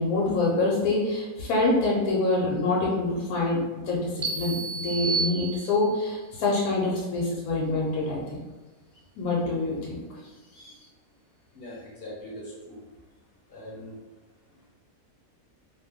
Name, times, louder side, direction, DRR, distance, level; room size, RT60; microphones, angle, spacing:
voice 1, 0.0-8.2 9.2-10.2 10.5-10.7, left 2 dB, 70° left, -4 dB, 1.1 m, -26 dB
sound 1, 4.2-6.1, right 4 dB, 70° right, 1.0 m, -31 dB
voice 2, 11.5-12.8 13.5-13.9, left 1 dB, 50° left, -5 dB, 0.8 m, -41 dB
2.7 x 2.0 x 3.5 m, 1.2 s
omnidirectional pair, 1.7 m